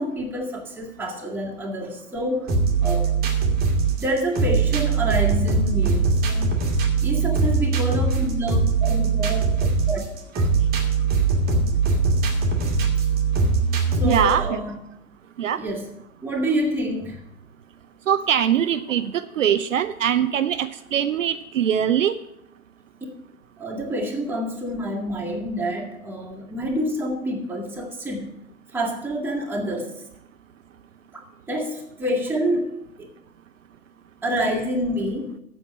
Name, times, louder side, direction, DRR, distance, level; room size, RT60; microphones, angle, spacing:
voice 1, 0.0-2.5 2.8-3.1 4.0-6.5 7.0-10.0 13.9-14.7 15.6-15.9 16.2-17.2 23.6-28.4 28.7-29.9 31.1-33.1 34.2-35.3, equal, 5° right, -2 dB, 1.9 m, -27 dB
sound 1, 2.5-14.5, right 4 dB, 20° right, 1.7 m, -21 dB
voice 2, 14.0-14.6 15.4-15.6 18.1-22.2, right 9 dB, 65° right, 11 dB, 0.6 m, -22 dB
7.8 x 7.1 x 8.4 m, 0.81 s
figure-of-eight pair, 105°, 41 cm